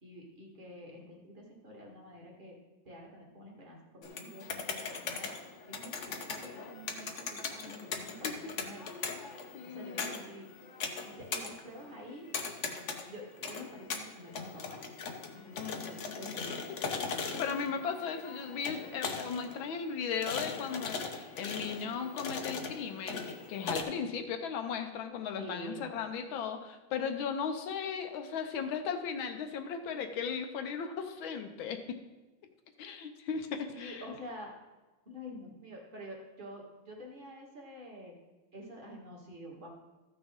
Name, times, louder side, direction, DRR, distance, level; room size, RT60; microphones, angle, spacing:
voice 1, 0.0-2.6 2.8-5.3 5.7-8.9 9.6-10.5 11.0-12.3 13.1-14.8 15.3-17.8 25.4-25.9 33.7-34.5 35.1-38.1 38.5-39.7, equal, 25° right, -2 dB, 1.8 m, -48 dB
sound 1, 4.0-23.8, left 4 dB, 55° left, 0.8 m, -40 dB
voice 2, 7.6-7.9 8.2-8.3 9.5-10.2 15.6-16.3 17.4-32.0 32.8-34.0, left 6 dB, 75° left, 6 dB, 1.5 m, -37 dB
14.0 x 6.1 x 3.6 m, 1.2 s
omnidirectional pair, 2.2 m